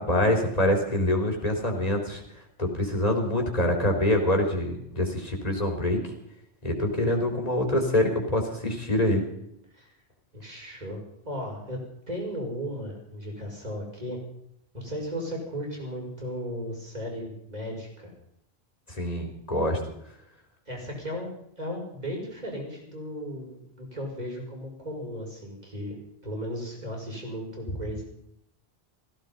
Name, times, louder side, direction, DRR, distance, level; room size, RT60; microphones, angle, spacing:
voice 1, 0.0-2.2 2.6-6.0 6.6-9.2 18.9-19.8, left 1 dB, 35° left, 2 dB, 3.8 m, -25 dB
voice 2, 10.3-14.2 14.7-18.1 20.7-26.0 26.2-28.0, equal, 40° right, 0 dB, 5.9 m, -36 dB
16.5 x 16.0 x 5.4 m, 0.77 s
omnidirectional pair, 1.1 m